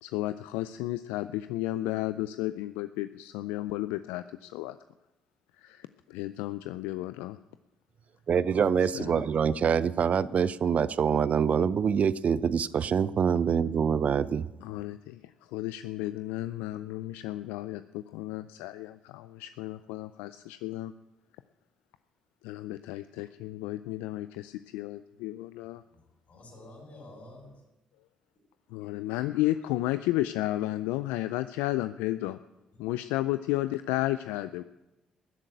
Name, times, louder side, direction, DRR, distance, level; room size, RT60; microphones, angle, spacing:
voice 1, 0.0-4.8 5.6-7.4 8.9-9.2 14.6-15.2 15.5-20.9 22.4-25.8 28.7-32.4 32.8-34.6, left 16 dB, 80° left, 13 dB, 0.4 m, -33 dB
voice 2, 8.3-14.5, right 7 dB, 50° right, 17 dB, 0.5 m, -25 dB
voice 3, 25.9-27.6 28.8-28.9 29.2-29.4, left 1 dB, 55° left, 0 dB, 6.8 m, -50 dB
14.0 x 7.6 x 9.2 m, 1.0 s
hypercardioid pair, 50°, 3 cm